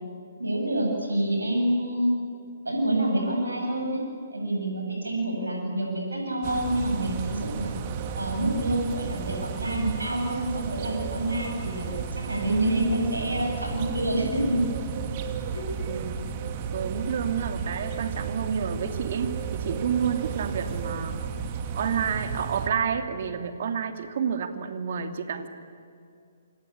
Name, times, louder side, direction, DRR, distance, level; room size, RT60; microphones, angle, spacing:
voice 1, 0.4-2.2 2.6-7.7 8.1-14.6 15.5-15.6, right 1 dB, 85° right, 1 dB, 7.9 m, -27 dB
sound 1, 6.4-22.7, right 6 dB, 40° right, 2.6 m, -33 dB
voice 2, 16.7-21.1 21.7-25.5, right 7 dB, 55° right, 7 dB, 2.7 m, -29 dB
27.5 x 25.5 x 8.6 m, 2.4 s
figure-of-eight pair, 130°, 0 cm